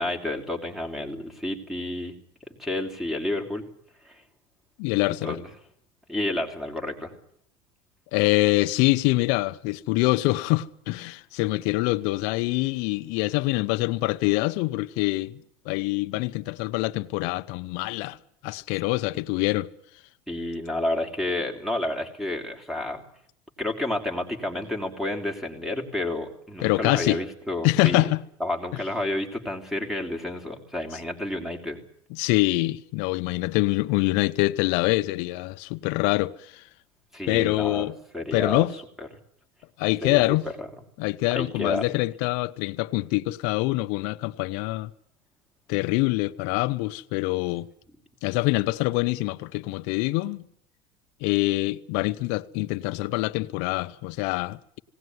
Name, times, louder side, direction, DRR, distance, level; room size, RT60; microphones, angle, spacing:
voice 1, 0.0-2.1 2.5-3.6 4.0-4.2 5.2-5.5 6.1-7.1 20.3-23.0 23.6-28.1 28.4-31.8 37.1-38.7 40.0-40.7 41.3-41.9, left 1 dB, ahead, 3.1 m, -30 dB
voice 2, 4.8-5.4 8.1-18.2 18.4-19.7 26.6-27.2 27.6-28.2 32.1-36.6 37.3-37.9 38.3-38.7 39.8-40.5 41.0-44.9 45.7-47.7 48.2-50.4 51.2-54.8, left 21 dB, 70° left, 0.8 m, -25 dB
19.5 x 18.0 x 9.5 m
supercardioid pair, 130°, 13 cm